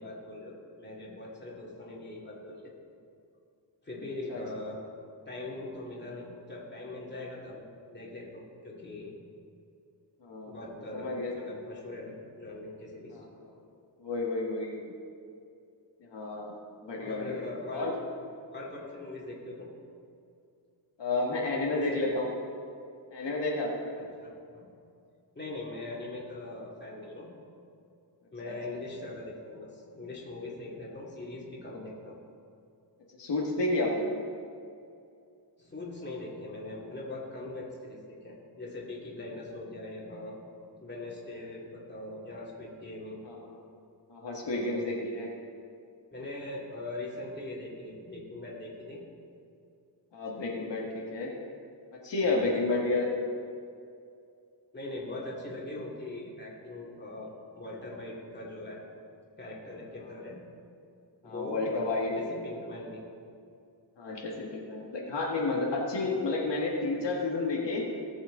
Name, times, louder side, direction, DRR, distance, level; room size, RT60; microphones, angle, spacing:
voice 1, 0.0-2.7 3.8-4.8 5.3-7.6 7.9-9.1 10.5-13.2 17.0-17.9 18.5-19.7 21.7-22.0 24.0-24.7 25.3-27.3 28.3-32.2 35.6-40.4 40.8-43.2 44.4-44.8 46.1-49.0 51.0-51.2 52.2-52.9 54.7-58.9 59.4-60.4 61.2-63.0, left 2 dB, 25° left, -4 dB, 2.4 m, -41 dB
voice 2, 10.2-10.6 10.9-11.3 13.1-13.4 14.0-14.8 16.1-16.5 16.8-17.4 17.7-17.9 21.0-22.3 23.1-23.9 28.5-28.6 33.2-34.1 43.2-43.6 44.1-45.3 50.1-51.3 52.0-53.1 61.2-62.1 64.0-67.9, left 2 dB, 70° left, -3 dB, 1.7 m, -31 dB
18.5 x 6.3 x 3.8 m, 2.4 s
wide cardioid pair, 105°, 44 cm